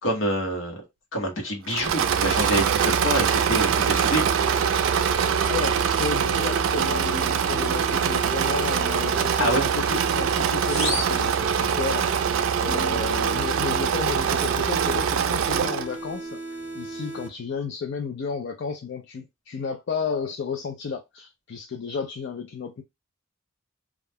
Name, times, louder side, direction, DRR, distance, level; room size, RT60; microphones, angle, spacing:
voice 1, 0.0-0.8 1.1-4.3 9.4-9.6, equal, 75° left, 1.1 m, -26 dB
Engine / Mechanisms, 1.7-15.9, right 7 dB, 80° right, 0.3 m, -23 dB
sound 1, 2.4-17.3, right 1 dB, 5° right, 0.8 m, -37 dB
voice 2, 5.4-12.1 12.6-22.8, left 5 dB, 60° left, 0.4 m, -32 dB
sound 2, 10.6-12.2, left 2 dB, 30° left, 1.0 m, -33 dB
2.4 x 2.1 x 3.3 m
head